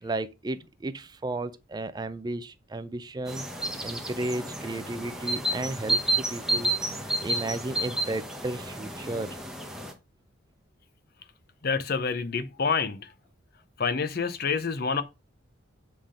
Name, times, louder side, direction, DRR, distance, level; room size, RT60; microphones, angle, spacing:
voice 1, 0.0-3.5 3.8-9.4, right 2 dB, 20° right, 0.3 m, -34 dB
sound 1, 3.3-9.9, right 1 dB, 5° right, 1.0 m, -31 dB
voice 2, 11.6-13.0 13.8-15.0, left 5 dB, 50° left, 0.6 m, -27 dB
7.6 x 3.6 x 5.0 m
head